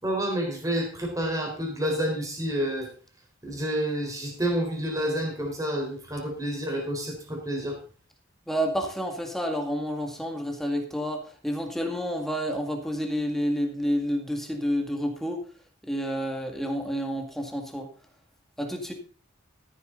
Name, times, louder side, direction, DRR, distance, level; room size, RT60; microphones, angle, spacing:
voice 1, 0.0-2.9 3.4-7.8, right 1 dB, 20° right, 1 dB, 4.1 m, -29 dB
voice 2, 8.5-15.5 15.8-17.9 18.6-18.9, equal, ahead, 3 dB, 2.0 m, -29 dB
14.0 x 9.4 x 4.0 m, 0.39 s
head